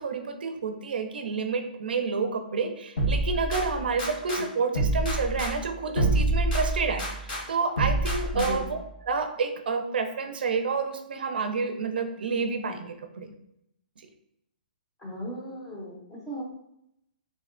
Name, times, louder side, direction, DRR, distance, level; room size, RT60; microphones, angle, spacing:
voice 1, 0.0-13.3, right 4 dB, 80° right, 6 dB, 0.4 m, -29 dB
sound 1, 3.0-4.4 4.7-7.4 7.8-8.8, right 1 dB, 65° left, 1.1 m, -27 dB
voice 2, 15.0-16.4, left 1 dB, 10° left, -3 dB, 0.5 m, -36 dB
3.5 x 2.1 x 2.4 m, 0.79 s
hypercardioid pair, 170°, 5 cm